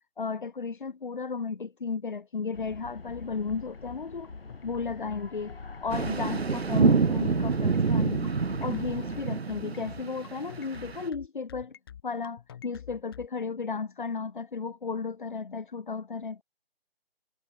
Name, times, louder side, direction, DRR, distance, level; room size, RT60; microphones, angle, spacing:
voice 1, 0.2-4.3 4.6-5.5 5.8-11.8 12.0-16.4, left 5 dB, 55° left, 2.9 m, -34 dB
sound 1, 2.5-9.2, left 4 dB, 70° left, 7.6 m, -43 dB
sound 2, 3.1-13.3, left 9 dB, 25° left, 3.2 m, -47 dB
sound 3, 5.9-11.1, right 5 dB, 90° right, 1.4 m, -27 dB
hypercardioid pair, 170°, 30 cm